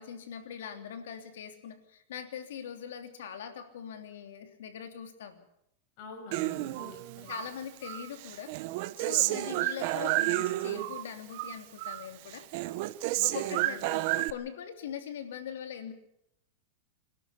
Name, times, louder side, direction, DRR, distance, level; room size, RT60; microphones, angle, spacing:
voice 1, 0.0-5.4 7.3-8.5 9.0-12.4 13.2-15.9, left 8 dB, 80° left, 6 dB, 3.1 m, -42 dB
voice 2, 6.0-7.3 9.1-9.5 12.9-14.0, left 4 dB, 45° left, 1 dB, 6.0 m, -47 dB
Human voice, 6.3-7.5 7.8-11.0 11.3-12.1 12.3-14.3, right 18 dB, 45° right, 0.9 m, -31 dB
26.0 x 12.0 x 8.4 m, 0.77 s
supercardioid pair, 160°, 0 cm